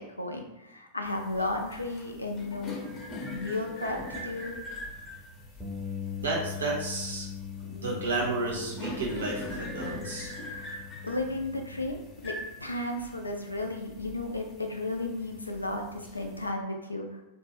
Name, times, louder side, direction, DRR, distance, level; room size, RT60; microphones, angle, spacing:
voice 1, 0.0-2.8 3.3-4.6 10.2-10.7 11.0-17.2, left 2 dB, 85° left, 3 dB, 0.4 m, -34 dB
sound 1, 1.1-16.5, left 1 dB, 30° left, 0.8 m, -43 dB
Bass guitar, 5.6-11.8, left 8 dB, 10° right, 0.6 m, -41 dB
voice 2, 6.2-7.3 7.6-10.3, right 2 dB, 70° right, -2 dB, 0.7 m, -32 dB
2.5 x 2.1 x 3.1 m, 0.95 s
figure-of-eight pair, 90°, 0 cm